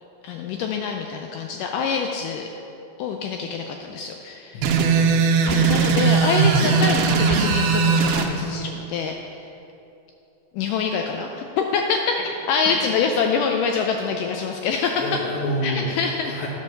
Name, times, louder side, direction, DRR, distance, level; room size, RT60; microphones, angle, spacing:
voice 1, 0.2-2.5 3.0-4.6 5.4-9.5 10.5-12.2 12.5-15.2 15.6-16.4, left 5 dB, 85° left, 3 dB, 1.9 m, -25 dB
voice 2, 4.5-5.7 14.9-15.9 16.2-16.5, equal, 60° left, -2 dB, 2.2 m, -29 dB
sound 1, 4.6-8.3, right 5 dB, 85° right, 2.6 m, -19 dB
11.0 x 5.4 x 6.5 m, 2.8 s
omnidirectional pair, 4.3 m